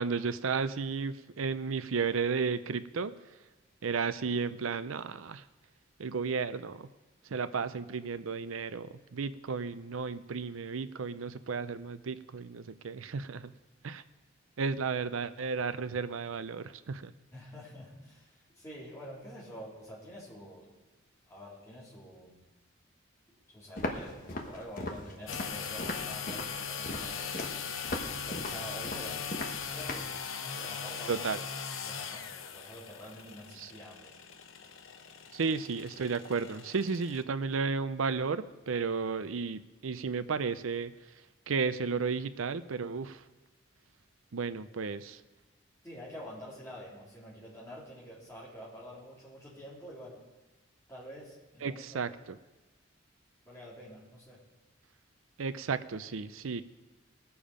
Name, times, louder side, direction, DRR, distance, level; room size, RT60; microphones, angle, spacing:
voice 1, 0.0-3.1 3.8-5.4 6.0-6.9 7.2-13.5 13.8-14.0 14.6-17.1 31.1-31.4 33.6-33.7 35.3-40.9 41.5-43.2 44.3-45.2 51.6-52.4 55.4-56.6, right 5 dB, 85° right, 13 dB, 0.6 m, -33 dB
voice 2, 17.3-20.7 21.3-22.4 23.5-27.7 28.2-31.3 31.8-34.2 45.8-50.2 50.9-52.0 53.4-54.4, equal, 15° left, -7 dB, 3.7 m, -47 dB
Walk footsteps, 23.8-30.1, left 1 dB, 40° left, 1.2 m, -39 dB
sound 1, 25.3-37.2, left 6 dB, 80° left, 0.8 m, -40 dB
19.5 x 7.0 x 5.1 m, 1.2 s
head